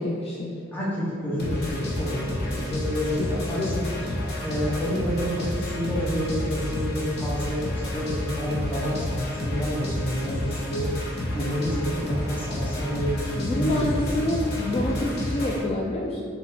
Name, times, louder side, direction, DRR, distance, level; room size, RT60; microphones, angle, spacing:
voice 1, 0.0-0.5 3.2-3.3 3.5-4.1 13.4-16.2, left 1 dB, 30° left, -3 dB, 0.3 m, -28 dB
voice 2, 0.7-3.9 4.4-14.3, equal, 10° left, -7 dB, 1.0 m, -29 dB
sound 1, 1.4-15.6, left 1 dB, 55° left, 0.8 m, -30 dB
4.0 x 2.7 x 4.1 m, 2.4 s
head